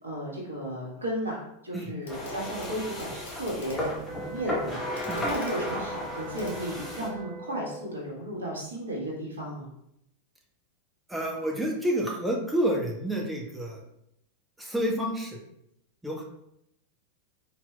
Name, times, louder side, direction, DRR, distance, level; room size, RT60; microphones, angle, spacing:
voice 1, 0.0-4.8 5.2-9.7, equal, 75° right, -3 dB, 1.3 m, -34 dB
Clock, 2.0-2.4 2.6-7.3 8.5-8.6, left 1 dB, 65° left, 0.9 m, -50 dB
sound 1, 2.1-7.1, left 1 dB, 20° left, 1.2 m, -34 dB
sound 2, 4.0-8.0, right 2 dB, 30° right, 0.4 m, -42 dB
voice 2, 11.1-13.8 14.6-15.4 16.0-16.2, equal, 5° right, -1 dB, 0.8 m, -29 dB
4.3 x 4.1 x 2.2 m, 0.78 s
figure-of-eight pair, 90°, 0 cm